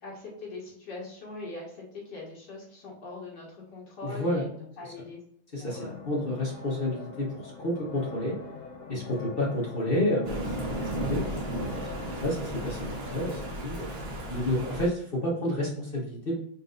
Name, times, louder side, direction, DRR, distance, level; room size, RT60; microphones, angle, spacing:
voice 1, 0.0-5.2 5.6-6.0 9.1-9.3, left 3 dB, 55° left, -4 dB, 2.0 m, -42 dB
voice 2, 4.0-4.5 5.5-5.8 6.1-8.3 8.9-11.2 11.6-13.9 14.3-16.4, left 1 dB, 35° left, -3 dB, 0.9 m, -30 dB
sound 1, 5.7-13.5, left 4 dB, 80° left, 1.8 m, -43 dB
Thunder, 10.2-14.9, right 1 dB, 45° right, 0.8 m, -34 dB
4.2 x 4.0 x 2.5 m, 0.67 s
omnidirectional pair, 2.3 m